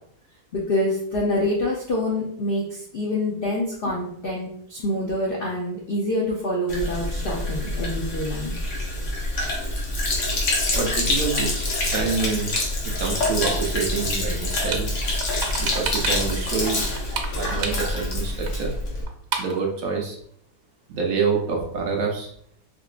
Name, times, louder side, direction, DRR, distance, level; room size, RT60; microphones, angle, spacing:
voice 1, 0.5-8.6, left 1 dB, 75° left, -3 dB, 0.5 m, -26 dB
Sink (filling or washing), 6.7-19.0, left 1 dB, 55° left, 1.0 m, -26 dB
voice 2, 10.7-12.5 12.8-14.9 15.6-16.8 17.4-18.7 19.4-20.2 20.9-22.3, right 5 dB, 65° right, 0 dB, 1.0 m, -27 dB
sound 1, 14.4-14.8 15.2-16.3 16.6-18.2 18.5-18.6 18.8-18.9 19.1-19.6, right 5 dB, 90° right, 1.3 m, -30 dB
3.7 x 2.9 x 2.4 m, 0.65 s
omnidirectional pair, 1.8 m